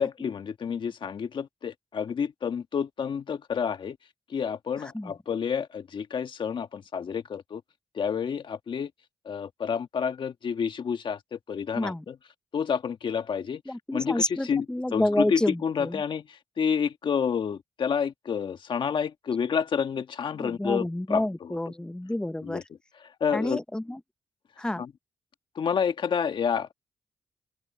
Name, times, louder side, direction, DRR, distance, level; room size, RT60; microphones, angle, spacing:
voice 1, 0.0-4.0 4.3-7.6 7.9-8.9 9.2-12.1 12.5-13.6 13.9-14.6 14.9-21.6 22.4-22.6 23.2-23.6 24.8-24.9 25.5-26.7, left 7 dB, 65° left, 1.6 m, -29 dB
voice 2, 4.8-5.1 11.8-12.0 13.7-16.0 20.4-22.6 23.3-24.0 24.6-24.8, left 1 dB, 10° left, 1.0 m, -29 dB
open air
cardioid pair, 60°, 9 cm